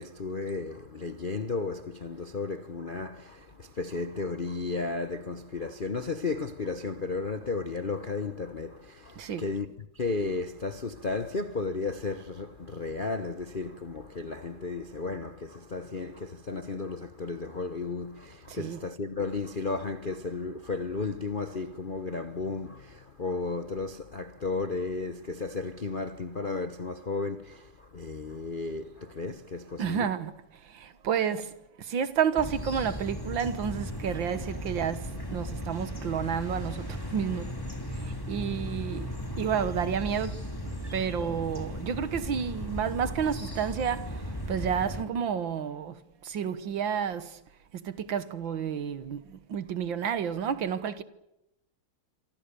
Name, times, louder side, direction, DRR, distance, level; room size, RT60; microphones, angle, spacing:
voice 1, 0.0-9.7 9.9-30.1, left 3 dB, 40° left, 0.8 m, -34 dB
voice 2, 18.5-18.8 29.8-30.3 30.6-37.5 37.9-47.4 47.7-51.0, right 7 dB, 65° right, 2.0 m, -31 dB
sound 1, 32.4-45.0, equal, 10° left, 3.3 m, -36 dB
26.5 x 25.5 x 6.9 m
omnidirectional pair, 2.4 m